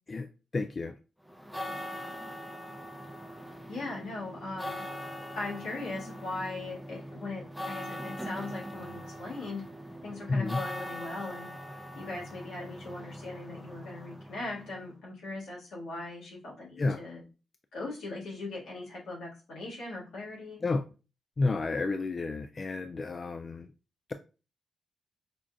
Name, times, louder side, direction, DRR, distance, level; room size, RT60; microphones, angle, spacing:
voice 1, 0.1-0.9 10.3-10.6 16.8-17.0 20.6-20.8 21.4-23.7, left 3 dB, 45° left, 0.3 m, -31 dB
sound 1, 1.3-14.8, equal, ahead, 0.6 m, -42 dB
voice 2, 3.7-4.8 5.3-9.6 10.0-11.5 11.9-17.2 17.7-20.6, left 2 dB, 85° left, 1.6 m, -39 dB
5.1 x 2.4 x 2.3 m
cardioid pair, 60°, 0 cm